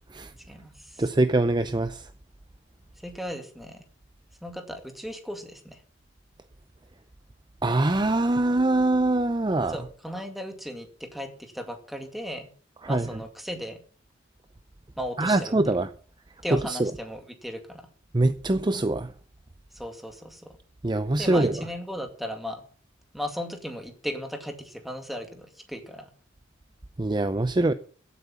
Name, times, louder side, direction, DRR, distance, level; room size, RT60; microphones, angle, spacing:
voice 1, 0.5-1.0 3.0-3.8 4.4-5.8 9.7-12.5 12.9-13.8 15.0-15.5 16.4-17.9 19.7-20.6 21.2-22.6 23.1-26.1, equal, ahead, 2.2 m, -36 dB
voice 2, 1.0-2.1 7.6-9.8 12.8-13.2 15.2-15.9 16.5-16.9 18.1-19.1 20.8-21.6 27.0-27.7, right 2 dB, 25° right, 0.6 m, -23 dB
15.0 x 8.5 x 7.1 m
head